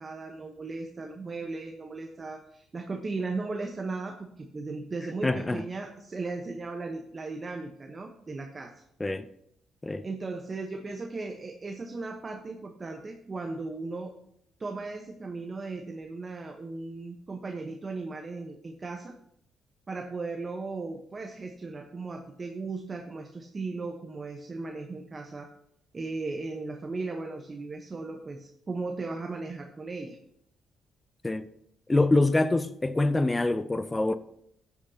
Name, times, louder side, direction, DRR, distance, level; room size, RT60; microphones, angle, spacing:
voice 1, 0.0-8.8 10.0-14.1 14.6-19.1 19.9-25.5 25.9-30.2, right 3 dB, 30° right, 0.9 m, -37 dB
voice 2, 5.2-5.6 9.0-9.3 9.8-10.1 31.2-31.5 31.9-34.2, left 2 dB, 15° left, 0.5 m, -25 dB
13.5 x 8.6 x 2.8 m
cardioid pair, 90°, 0 cm